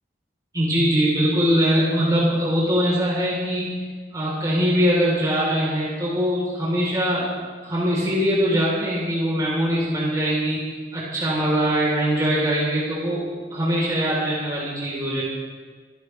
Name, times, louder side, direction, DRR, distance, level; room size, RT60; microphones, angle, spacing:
voice 1, 0.5-3.8 4.1-7.3 7.6-13.2 13.5-15.2, equal, 20° right, -5 dB, 3.8 m, -22 dB
24.0 x 14.5 x 3.4 m, 1.5 s
head